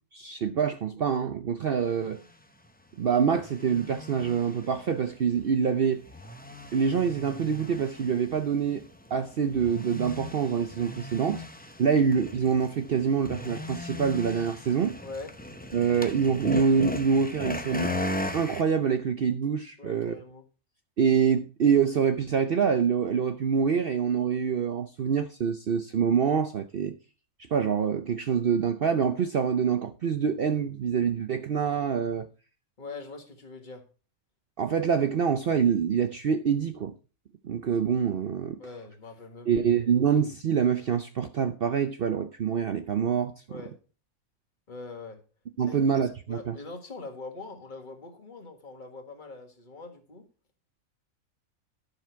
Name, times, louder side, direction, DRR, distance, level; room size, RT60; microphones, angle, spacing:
voice 1, 0.1-2.2 3.0-6.0 6.7-8.8 9.1-11.4 11.8-15.0 15.7-17.9 18.3-20.1 21.0-26.9 27.5-32.3 34.6-36.9 37.4-38.6 39.5-43.3 45.6-46.6, right 7 dB, 55° right, 0.6 m, -25 dB
sound 1, 2.0-2.1 2.6-2.7 3.3-18.6, left 1 dB, 15° left, 0.4 m, -38 dB
voice 2, 15.0-15.3 19.8-20.4 32.8-33.8 38.6-39.9 43.5-43.8 44.7-45.2 45.7-50.2, left 3 dB, 35° left, 1.8 m, -43 dB
11.0 x 6.7 x 4.5 m
omnidirectional pair, 1.5 m